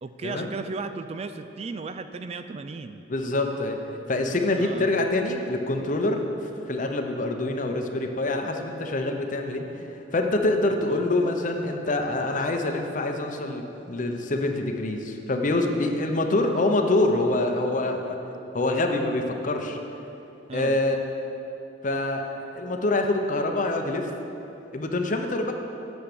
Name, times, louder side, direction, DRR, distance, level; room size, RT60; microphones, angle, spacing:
voice 1, 0.0-3.0 4.6-5.1 10.7-11.0 20.5-20.8, right 4 dB, 35° right, 9 dB, 0.3 m, -36 dB
voice 2, 3.1-3.8 4.1-6.3 6.7-18.2 18.5-19.8 20.5-21.0 21.8-24.1 24.7-25.5, left 2 dB, 45° left, 4 dB, 0.8 m, -25 dB
8.0 x 7.1 x 6.8 m, 2.9 s
head